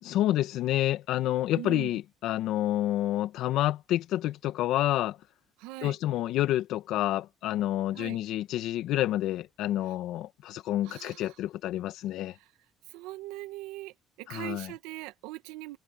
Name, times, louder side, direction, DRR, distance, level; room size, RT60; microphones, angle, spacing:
voice 1, 0.0-5.2 5.8-12.3 14.3-14.7, left 13 dB, 75° left, 1.6 m, -29 dB
voice 2, 1.6-2.0 5.6-6.0 7.9-8.2 9.9-10.0 10.8-11.4 12.3-12.5 12.9-15.8, right 18 dB, 85° right, 1.8 m, -41 dB
supercardioid pair, 75°, 0 cm